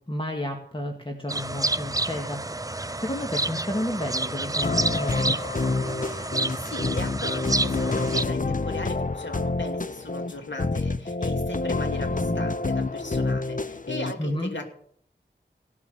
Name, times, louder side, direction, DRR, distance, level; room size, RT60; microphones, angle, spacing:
voice 1, 0.1-2.5 3.0-5.4 14.2-14.5, left 1 dB, 25° left, 1 dB, 2.0 m, -31 dB
sound 1, 1.3-8.2, right 2 dB, 20° right, 0.5 m, -29 dB
sound 2, 4.6-14.1, left 3 dB, 45° left, 0.8 m, -28 dB
voice 2, 6.6-14.7, left 2 dB, 75° left, 3 dB, 2.6 m, -36 dB
17.0 x 7.4 x 7.9 m, 0.63 s
wide cardioid pair, 45°, 19 cm